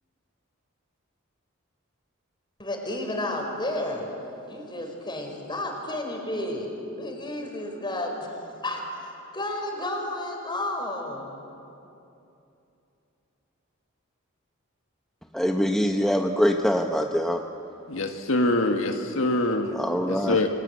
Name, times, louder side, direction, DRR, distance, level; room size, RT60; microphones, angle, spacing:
voice 1, 2.6-4.1 4.5-8.3 8.6-11.3, left 1 dB, 20° left, 2 dB, 5.0 m, -32 dB
voice 2, 15.3-17.4 19.7-20.4, equal, ahead, 3 dB, 0.8 m, -24 dB
voice 3, 17.9-19.7 20.0-20.5, left 2 dB, 70° left, 3 dB, 1.7 m, -24 dB
29.5 x 24.0 x 8.4 m, 2.8 s
head